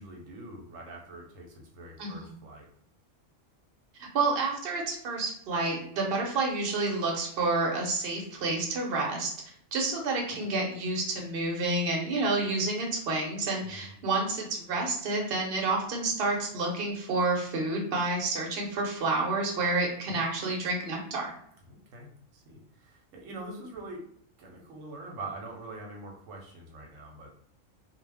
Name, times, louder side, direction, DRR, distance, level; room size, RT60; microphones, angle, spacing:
voice 1, 0.0-2.7 13.6-13.9 21.7-24.0 24.4-27.5, right 2 dB, 85° right, 0 dB, 1.0 m, -44 dB
voice 2, 2.0-2.3 4.0-9.3 9.7-21.3, right 3 dB, 55° right, 0 dB, 0.9 m, -29 dB
2.3 x 2.1 x 3.3 m, 0.66 s
omnidirectional pair, 1.3 m